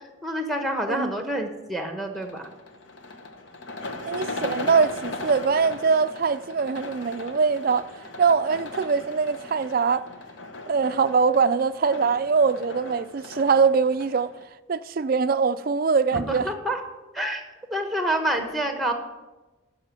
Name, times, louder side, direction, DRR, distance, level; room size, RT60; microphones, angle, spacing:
voice 1, 0.0-2.5 16.1-16.8 17.1-17.4 17.7-18.9, right 1 dB, ahead, 1.0 m, -28 dB
sound 1, 2.1-14.4, left 2 dB, 70° left, 1.0 m, -38 dB
voice 2, 4.1-7.9 8.2-10.1 10.7-14.3 14.7-16.5, right 5 dB, 45° right, 0.3 m, -22 dB
11.0 x 5.6 x 7.5 m
head